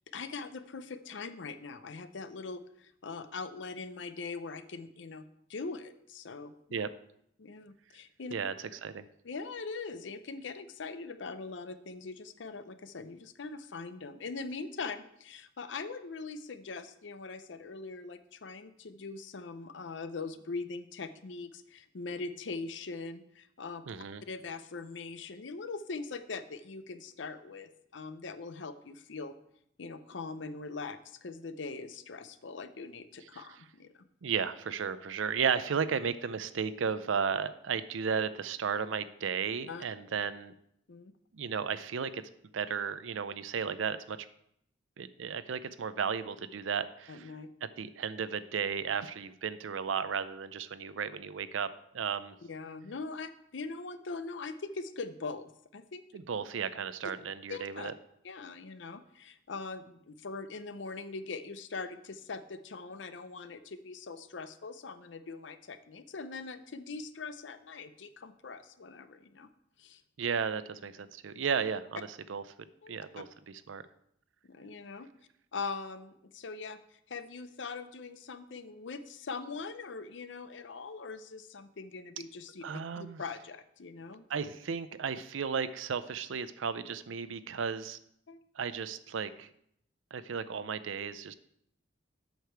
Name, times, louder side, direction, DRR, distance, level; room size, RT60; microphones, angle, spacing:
voice 1, 0.1-6.5 7.4-8.3 9.2-23.8 24.3-29.3 29.8-34.0 39.7-39.8 40.9-41.1 47.1-47.5 52.4-56.0 57.5-57.9 58.2-69.5 69.8-70.0 72.8-73.0 74.4-75.1 75.5-82.6 83.0-84.3 88.3-88.4, left 4 dB, 65° left, 11 dB, 0.6 m, -42 dB
voice 2, 23.9-24.2 33.3-33.4 34.2-40.5 41.3-42.2 42.5-44.2 45.0-47.3 47.8-51.7 51.9-52.3 56.1-57.9 70.2-72.4 72.9-73.3 73.7-73.8 82.6-83.2 84.3-88.0 88.6-89.5 90.1-91.3, right 6 dB, 80° right, 14 dB, 0.5 m, -34 dB
8.1 x 6.6 x 4.5 m, 0.72 s
head